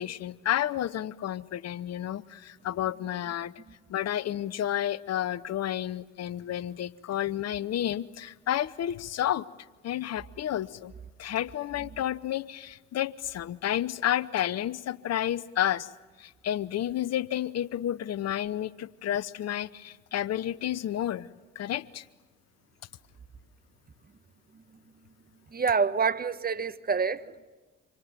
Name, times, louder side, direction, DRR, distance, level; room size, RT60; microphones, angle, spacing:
voice 1, 0.0-3.5 3.9-9.5 9.8-10.9 11.2-15.9 16.2-21.3 21.5-22.0, left 11 dB, 50° left, 0.8 m, -31 dB
voice 2, 25.5-27.5, right 5 dB, 25° right, 1.3 m, -27 dB
27.5 x 26.5 x 7.5 m
hypercardioid pair, 55°, 34 cm